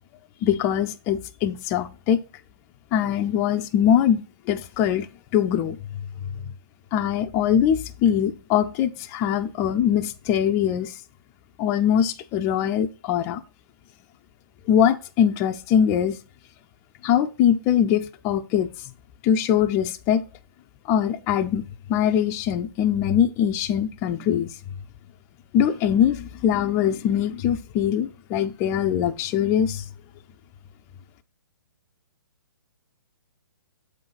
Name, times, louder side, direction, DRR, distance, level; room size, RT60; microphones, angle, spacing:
voice 1, 0.4-2.2 2.9-5.1 5.3-5.8 6.9-10.9 11.6-13.4 14.7-16.2 17.0-18.7 19.2-20.2 20.9-24.5 25.5-29.8, left 9 dB, 20° left, 0.4 m, -22 dB
8.0 x 3.9 x 5.5 m
hypercardioid pair, 155°, 12 cm